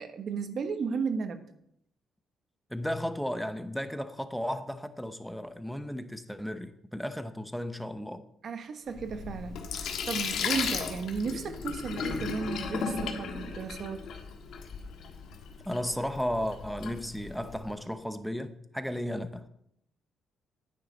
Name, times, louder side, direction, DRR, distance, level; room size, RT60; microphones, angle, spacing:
voice 1, 0.0-1.4 8.4-14.0, right 5 dB, 55° right, 1.1 m, -34 dB
voice 2, 2.7-8.2 15.7-19.5, equal, ahead, 0.8 m, -34 dB
Sink (filling or washing), 8.9-17.7, left 5 dB, 75° left, 1.5 m, -36 dB
9.5 x 9.4 x 4.1 m
cardioid pair, 90°, 0 cm